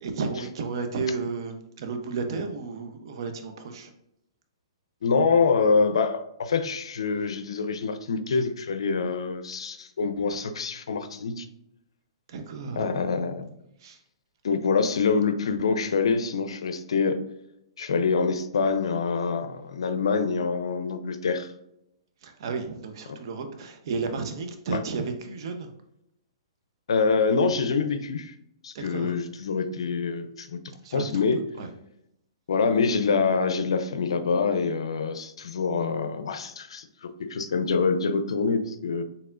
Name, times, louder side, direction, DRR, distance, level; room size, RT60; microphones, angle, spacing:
voice 1, 0.0-3.9 12.3-13.0 13.8-14.0 22.2-25.7 28.7-29.2 30.8-31.3 31.6-31.7, right 4 dB, 60° right, 6 dB, 0.7 m, -33 dB
voice 2, 5.0-11.5 12.8-13.5 14.4-17.2 17.8-21.5 24.7-24.8 26.9-28.3 28.6-30.6 30.9-31.4 32.5-39.0, left 5 dB, 80° left, 9 dB, 0.5 m, -25 dB
4.6 x 3.4 x 2.5 m, 0.81 s
hypercardioid pair, 135°, 3 cm